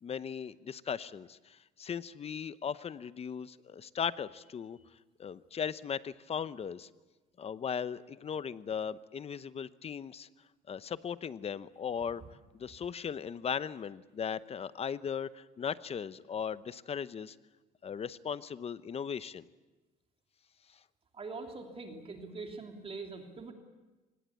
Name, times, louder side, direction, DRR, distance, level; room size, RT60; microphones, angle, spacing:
voice 1, 0.0-4.8 5.2-6.9 7.4-10.3 10.7-12.2 12.5-17.4 17.8-19.5, left 7 dB, 35° left, 15 dB, 0.8 m, -38 dB
voice 2, 21.1-23.5, right 3 dB, 35° right, 3 dB, 3.0 m, -43 dB
25.0 x 20.0 x 8.3 m, 1.1 s
cardioid pair, 110°, 17 cm